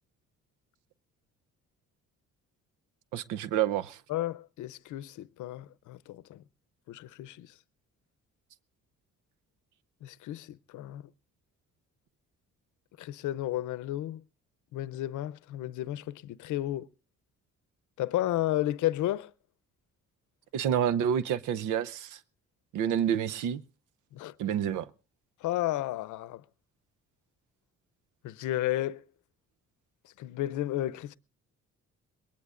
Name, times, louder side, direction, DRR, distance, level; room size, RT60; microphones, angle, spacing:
voice 1, 3.1-4.0 20.5-22.2 22.7-23.6 24.4-24.9, right 9 dB, 85° right, 0.7 m, -28 dB
voice 2, 4.1-6.4 6.9-7.5 10.0-11.0 13.0-14.2 14.7-16.9 18.0-19.3 24.1-24.3 25.4-26.4 28.2-29.1 30.2-31.2, left 14 dB, 80° left, 0.6 m, -32 dB
22.0 x 19.0 x 2.5 m
cardioid pair, 90°, 30 cm